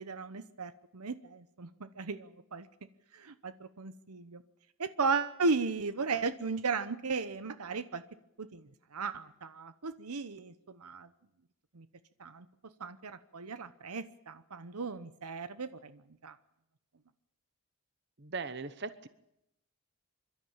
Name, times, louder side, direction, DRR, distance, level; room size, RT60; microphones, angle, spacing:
voice 1, 0.0-2.7 3.1-4.4 4.8-8.0 8.4-11.1 11.7-11.9 12.2-12.5 12.8-16.4, right 4 dB, 90° right, 12 dB, 0.9 m, -36 dB
voice 2, 18.2-19.1, right 4 dB, 50° right, 13 dB, 0.9 m, -39 dB
26.0 x 13.0 x 8.8 m, 0.83 s
head